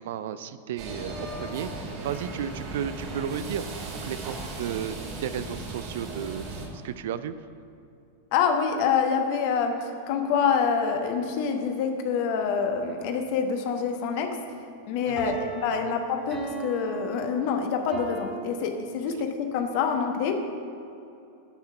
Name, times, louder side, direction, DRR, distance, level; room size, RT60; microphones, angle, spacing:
voice 1, 0.0-7.3 15.1-15.4 15.7-15.9, right 9 dB, 55° right, 13 dB, 0.4 m, -34 dB
sound 1, 0.8-6.7, right 2 dB, 40° right, 2.4 m, -37 dB
voice 2, 8.3-9.8 10.1-14.4 14.9-20.4, left 6 dB, 45° left, 5 dB, 1.1 m, -26 dB
sound 2, 9.7-10.7 15.2-18.3, right 5 dB, 15° right, 1.9 m, -39 dB
12.0 x 5.7 x 7.0 m, 2.6 s
figure-of-eight pair, 90°, 0 cm